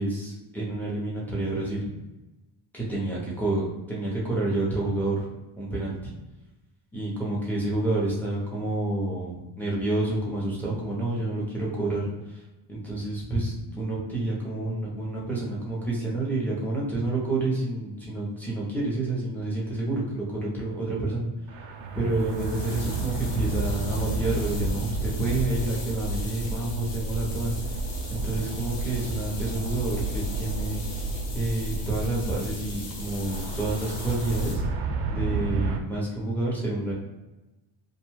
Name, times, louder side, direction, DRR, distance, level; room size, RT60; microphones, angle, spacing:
voice 1, 0.0-2.0 2.7-5.3 5.6-6.0 6.9-12.4 12.7-21.3 21.9-27.6 28.1-30.8 31.3-34.6 35.1-36.9, right 2 dB, 5° left, -6 dB, 0.6 m, -29 dB
sound 1, 21.5-35.8, right 2 dB, 65° right, 0.5 m, -31 dB
sound 2, 22.1-34.6, left 3 dB, 60° left, 0.9 m, -42 dB
2.7 x 2.2 x 3.0 m, 1.0 s
cardioid pair, 155°, 49 cm